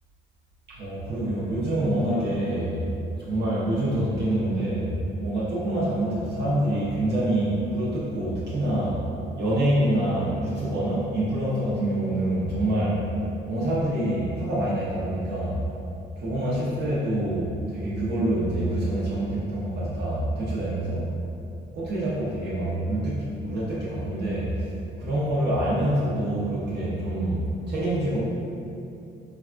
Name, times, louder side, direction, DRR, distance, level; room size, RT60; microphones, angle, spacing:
voice 1, 0.7-2.9 3.2-9.0 9.4-13.1 13.5-15.6 16.2-21.1 21.7-28.2, right 1 dB, 60° right, -8 dB, 0.7 m, -26 dB
3.3 x 2.4 x 2.2 m, 2.7 s
cardioid pair, 90°, 20 cm